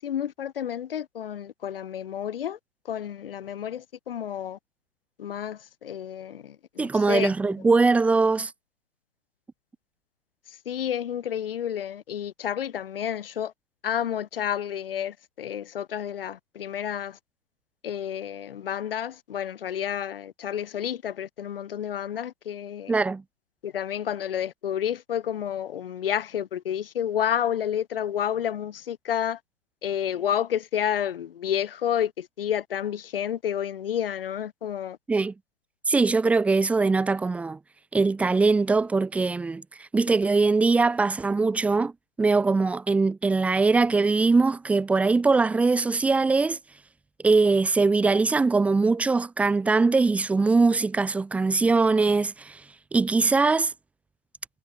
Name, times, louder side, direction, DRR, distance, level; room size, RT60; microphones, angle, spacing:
voice 1, 0.0-2.6 2.9-4.6 5.2-7.5 10.5-13.5 13.8-17.2 17.8-23.0 23.6-29.4 29.8-35.0, left 9 dB, 50° left, 7.1 m, -30 dB
voice 2, 6.8-8.5 22.9-23.2 35.1-35.3 35.9-37.6 37.9-41.9 42.2-46.6 47.2-52.6 52.9-53.7, right 3 dB, 5° right, 2.0 m, -22 dB
hypercardioid pair, 170°, 36 cm